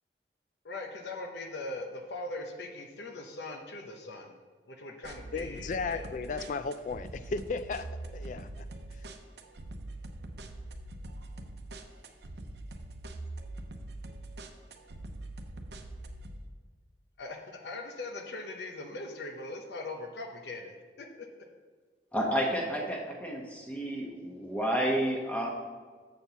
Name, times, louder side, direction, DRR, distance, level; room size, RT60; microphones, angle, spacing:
voice 1, 0.6-4.4 4.7-6.0 6.4-6.6 17.2-20.7 21.0-21.5, left 2 dB, 75° left, 3 dB, 0.8 m, -41 dB
sound 1, 5.0-16.4, right 1 dB, 75° right, 0.7 m, -43 dB
voice 2, 5.3-7.9 8.1-8.6, left 4 dB, 45° left, 12 dB, 0.3 m, -35 dB
voice 3, 22.1-25.5, equal, 10° left, 0 dB, 1.1 m, -30 dB
7.1 x 4.5 x 6.8 m, 1.5 s
head